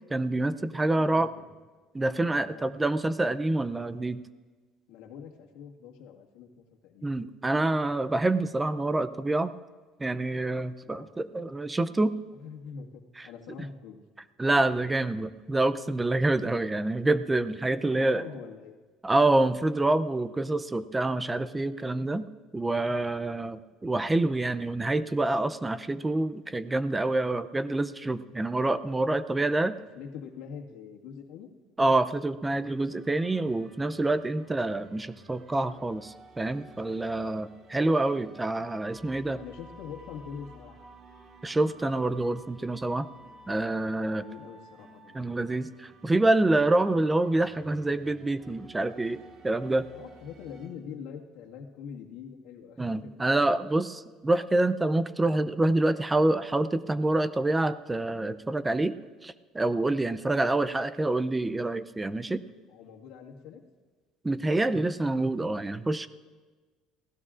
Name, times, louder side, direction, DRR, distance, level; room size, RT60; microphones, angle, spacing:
voice 1, 0.1-1.3 1.9-4.2 7.0-9.5 10.0-12.1 14.4-18.2 19.0-22.2 22.5-29.7 31.8-39.4 41.4-43.1 43.5-44.2 45.1-49.9 52.8-59.0 59.2-62.4 64.2-66.1, right 2 dB, 10° right, 14 dB, 0.4 m, -27 dB
voice 2, 0.9-1.5 2.4-2.7 4.9-7.1 10.8-11.1 12.3-14.0 17.7-18.7 29.3-29.4 29.9-31.5 34.4-34.6 37.1-37.4 39.4-40.9 44.0-45.2 49.9-53.1 60.2-60.4 62.7-63.6, left 7 dB, 85° left, 1 dB, 1.7 m, -44 dB
sound 1, 32.4-50.7, right 2 dB, 45° right, 2.7 m, -53 dB
29.5 x 16.5 x 2.5 m, 1.4 s
cardioid pair, 135°, 0 cm